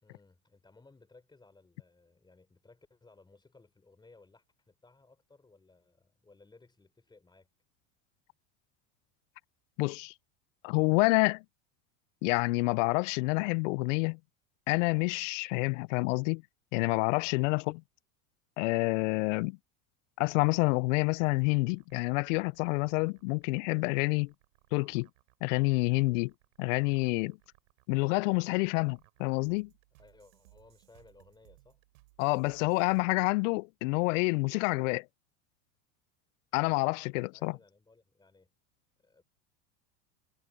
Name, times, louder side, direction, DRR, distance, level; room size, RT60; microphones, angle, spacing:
voice 1, 0.0-7.5 17.3-17.5 30.0-31.8 36.6-38.5 39.0-39.2, left 3 dB, 10° left, 3.9 m, -60 dB
voice 2, 9.8-10.1 10.6-11.4 12.2-14.2 14.7-16.4 16.7-17.8 18.6-19.6 20.2-24.3 24.7-25.1 25.4-26.3 26.6-27.4 27.9-29.7 32.2-35.1 36.5-37.6, left 27 dB, 70° left, 0.5 m, -28 dB
sound 1, 21.2-33.0, right 21 dB, 75° right, 4.4 m, -64 dB
supercardioid pair, 110°, 39 cm